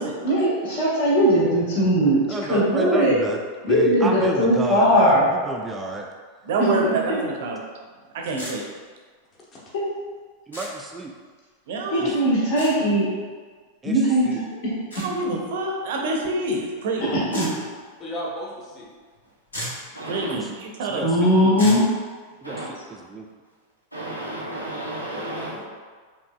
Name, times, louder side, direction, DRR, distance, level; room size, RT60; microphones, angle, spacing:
voice 1, 0.2-3.2 3.6-5.4 6.6-6.9 9.7-9.8 11.9-13.1 13.8-15.1 17.0-17.5 21.0-21.9, equal, 55° left, -6 dB, 1.3 m, -20 dB
voice 2, 2.3-3.4 3.7-6.1 10.5-11.1 12.0-12.1 13.8-14.4 20.3-20.5 20.9-21.8 22.4-23.3, right 2 dB, 15° right, 1 dB, 0.3 m, -32 dB
voice 3, 6.4-7.6 8.1-8.6 11.7-12.1 15.0-17.2 20.1-21.0, right 2 dB, 55° right, 0 dB, 0.6 m, -26 dB
sound 1, 8.4-8.5 10.5-10.7 12.6-12.7 14.9-15.1 17.3-17.5 19.2-19.3 19.5-19.9 21.6-21.8, equal, 70° left, 1.2 m, -33 dB
voice 4, 18.0-18.9 25.1-25.6, equal, 30° left, -4 dB, 1.0 m, -35 dB
voice 5, 19.9-20.4 22.4-22.7 23.9-25.6, right 1 dB, 90° left, -5 dB, 0.8 m, -32 dB
5.0 x 2.6 x 2.3 m, 1.5 s
figure-of-eight pair, 90°, 0 cm